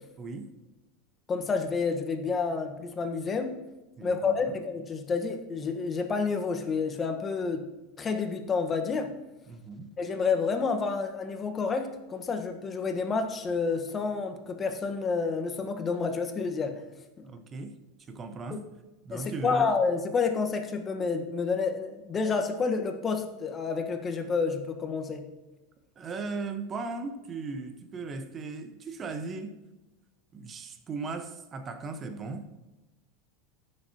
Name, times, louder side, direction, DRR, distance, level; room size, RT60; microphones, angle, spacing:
voice 1, 0.2-0.5 4.0-4.6 9.5-9.9 17.2-17.8 18.1-18.6 19.0-19.7 26.0-29.6 30.3-32.5, right 3 dB, 30° right, 8 dB, 1.2 m, -37 dB
voice 2, 1.3-3.6 4.0-7.7 8.0-9.1 10.0-16.8 18.5-18.6 19.1-25.3, left 4 dB, 30° left, 6 dB, 1.3 m, -29 dB
15.5 x 6.6 x 3.0 m, 1.1 s
hypercardioid pair, 85°, 0 cm